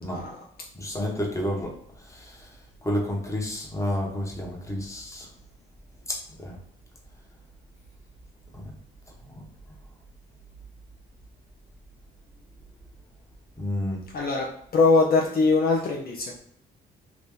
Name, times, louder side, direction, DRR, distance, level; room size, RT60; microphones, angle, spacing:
voice 1, 0.1-0.4 14.1-14.5 14.7-16.4, left 3 dB, 50° left, -1 dB, 0.6 m, -22 dB
voice 2, 0.8-1.7 2.1-2.3 2.8-5.3 6.1-6.5 13.6-14.0, left 1 dB, 15° left, -2 dB, 1.1 m, -30 dB
3.0 x 2.6 x 3.5 m, 0.68 s
cardioid pair, 90°, 20 cm